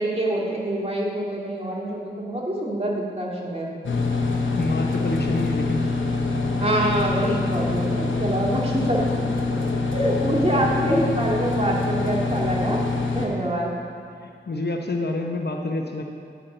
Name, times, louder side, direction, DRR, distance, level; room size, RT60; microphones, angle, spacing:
voice 1, 0.0-3.7 6.6-9.1 9.4-9.5 9.9-12.8 13.1-13.7, right 1 dB, 30° right, -3 dB, 2.1 m, -25 dB
sound 1, 3.8-13.3, left 3 dB, 85° left, 1.0 m, -25 dB
voice 2, 4.6-5.9 10.5-10.6 14.2-16.0, left 2 dB, 60° left, 3 dB, 0.9 m, -27 dB
9.2 x 5.7 x 6.7 m, 2.4 s
cardioid pair, 40°, 20 cm